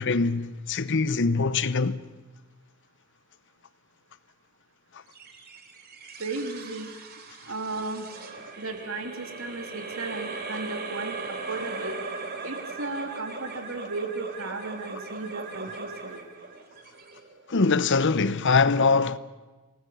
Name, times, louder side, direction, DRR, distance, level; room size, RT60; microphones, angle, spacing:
voice 1, 0.0-2.0 17.5-19.2, left 4 dB, 55° left, 0.8 m, -23 dB
sound 1, 5.1-17.7, right 4 dB, 45° right, 3.2 m, -39 dB
voice 2, 6.2-6.9 7.5-8.1 8.6-12.0 12.4-16.2, right 3 dB, 65° right, 2.9 m, -35 dB
28.0 x 19.5 x 6.9 m
head